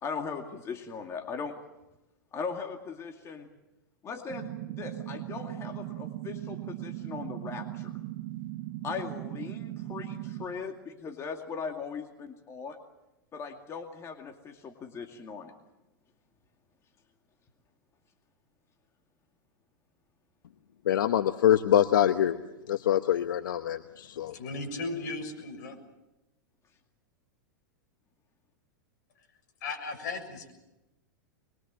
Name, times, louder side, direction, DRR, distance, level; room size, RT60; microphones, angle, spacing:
voice 1, 0.0-1.6 2.3-3.5 4.0-7.9 8.8-12.8 13.3-15.5, left 5 dB, 25° left, 4 dB, 2.3 m, -39 dB
sound 1, 4.3-10.5, right 15 dB, 55° right, 2.1 m, -38 dB
voice 2, 20.9-22.4 22.7-24.3, left 11 dB, 80° left, 9 dB, 1.1 m, -24 dB
voice 3, 24.3-25.8 29.6-30.5, left 3 dB, 60° left, 5 dB, 6.9 m, -36 dB
25.0 x 22.5 x 7.5 m, 0.96 s
hypercardioid pair, 115°, 11 cm